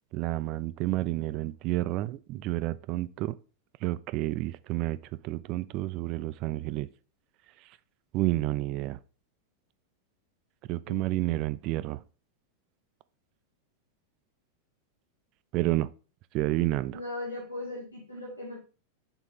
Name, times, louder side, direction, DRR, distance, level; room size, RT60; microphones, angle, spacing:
voice 1, 0.1-3.4 3.8-5.0 5.2-6.9 8.1-9.0 10.7-12.0 15.5-15.9 16.3-17.0, right 17 dB, 40° right, 0.3 m, -30 dB
voice 2, 10.9-11.3 16.9-18.6, left 2 dB, 85° left, 1.8 m, -38 dB
6.0 x 4.4 x 3.6 m
figure-of-eight pair, 90°, 0 cm